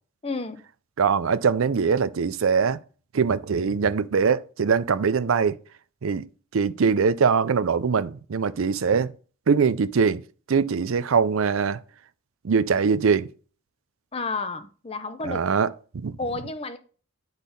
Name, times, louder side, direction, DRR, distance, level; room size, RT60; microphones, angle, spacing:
voice 1, 0.2-0.6 14.1-15.4 16.2-16.8, left 3 dB, 30° left, 0.7 m, -31 dB
voice 2, 1.0-2.8 3.1-5.6 6.0-6.3 6.5-9.1 9.5-10.2 10.5-11.8 12.4-13.3 15.2-15.7 15.9-16.1, right 5 dB, 80° right, 0.5 m, -22 dB
10.0 x 4.0 x 5.3 m
head